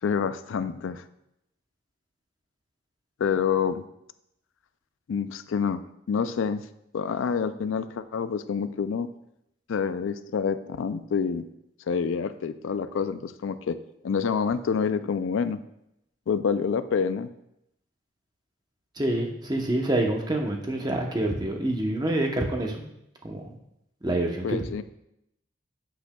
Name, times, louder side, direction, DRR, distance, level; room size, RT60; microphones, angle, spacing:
voice 1, 0.0-1.0 3.2-3.8 5.1-6.6 6.9-9.1 9.7-11.5 11.9-15.6 16.3-17.3 24.4-24.8, left 6 dB, 70° left, 12 dB, 0.4 m, -27 dB
voice 2, 19.0-22.7 23.2-23.5 24.0-24.6, right 1 dB, 20° right, 2 dB, 0.8 m, -27 dB
8.7 x 7.9 x 2.3 m, 0.81 s
head